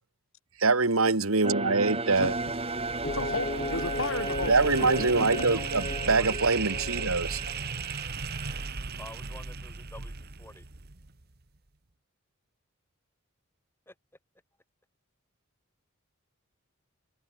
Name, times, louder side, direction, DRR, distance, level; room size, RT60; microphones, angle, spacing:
voice 1, 0.6-2.3 4.5-5.8 6.1-7.4, right 3 dB, 80° right, 2.1 m, -24 dB
sound 1, 1.4-8.7, right 3 dB, 25° right, 5.2 m, -36 dB
sound 2, 2.1-11.2, right 5 dB, 50° right, 1.4 m, -36 dB
voice 2, 3.0-4.9 5.2-5.5, left 2 dB, 70° left, 6.8 m, -34 dB
sound 3, 3.0-7.7, left 2 dB, 35° left, 1.3 m, -36 dB
voice 3, 5.2-5.8 6.1-6.4 9.0-10.7 13.9-14.0, left 1 dB, 10° left, 6.0 m, -47 dB
head